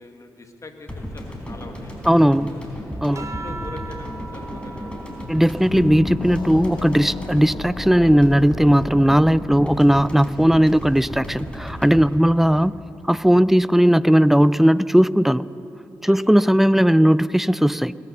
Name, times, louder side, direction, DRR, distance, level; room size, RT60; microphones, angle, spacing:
voice 1, 0.0-2.6 3.1-5.4 12.0-12.2 16.0-16.2 16.5-16.6, left 3 dB, 40° left, 5 dB, 1.6 m, -43 dB
sound 1, 0.9-13.2 13.5-13.6, equal, 15° left, 3.8 m, -34 dB
voice 2, 2.1-2.5 3.0-3.2 5.3-12.7 13.1-15.4 16.0-18.0, equal, 5° right, 18 dB, 0.3 m, -17 dB
sound 2, 3.1-7.9 8.4-10.1 11.3-11.8, right 3 dB, 40° right, 1.2 m, -42 dB
sound 3, 5.7-10.9, left 4 dB, 60° left, 0.7 m, -33 dB
20.5 x 6.9 x 6.7 m, 2.9 s
supercardioid pair, 40°, 8 cm